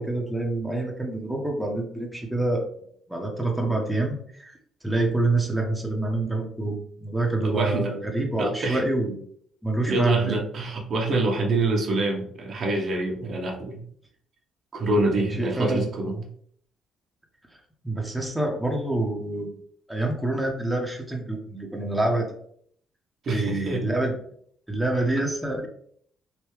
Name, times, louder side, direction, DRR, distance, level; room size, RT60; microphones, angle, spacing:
voice 1, 0.0-2.6 3.1-4.5 4.8-9.2 9.6-10.4 15.2-15.9 17.8-19.5 19.9-22.3 23.3-24.2 24.7-25.7, right 2 dB, 5° right, 1 dB, 0.9 m, -26 dB
voice 2, 7.4-7.9 8.4-8.8 9.9-13.8 14.7-16.3 23.2-23.8, right 2 dB, 55° right, 0 dB, 0.8 m, -26 dB
3.3 x 2.7 x 3.1 m, 0.63 s
supercardioid pair, 70°, 0 cm